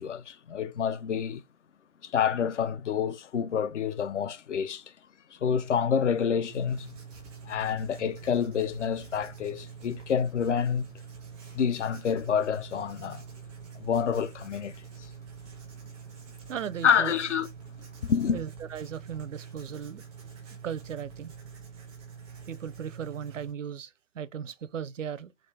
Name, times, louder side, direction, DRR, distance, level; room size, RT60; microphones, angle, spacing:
voice 1, 0.0-1.4 2.0-4.8 5.3-6.9 7.4-11.0 11.5-13.2 13.7-14.8 16.8-17.5 18.1-18.4, left 7 dB, 65° left, 0.7 m, -28 dB
Writing, 6.5-23.5, right 6 dB, 5° left, 0.4 m, -46 dB
voice 2, 16.5-17.1 18.3-20.0 20.6-21.3 22.5-25.3, right 8 dB, 80° right, 0.7 m, -37 dB
5.0 x 2.6 x 3.4 m
hypercardioid pair, 145°, 37 cm